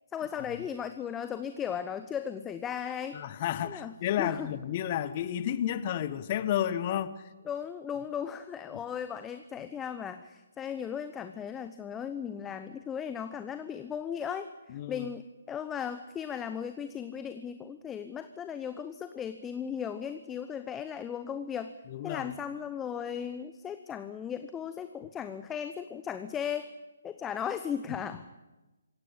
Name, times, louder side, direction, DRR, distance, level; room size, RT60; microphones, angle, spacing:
voice 1, 0.1-3.2 3.6-4.5 7.5-21.7 22.0-26.7 27.0-28.2, left 8 dB, 10° left, 10 dB, 0.9 m, -36 dB
voice 2, 3.1-7.2 8.7-8.8 14.7-15.1 21.9-22.3, left 10 dB, 35° left, 15 dB, 1.4 m, -32 dB
26.5 x 16.0 x 8.6 m, 1.1 s
figure-of-eight pair, 135°, 0 cm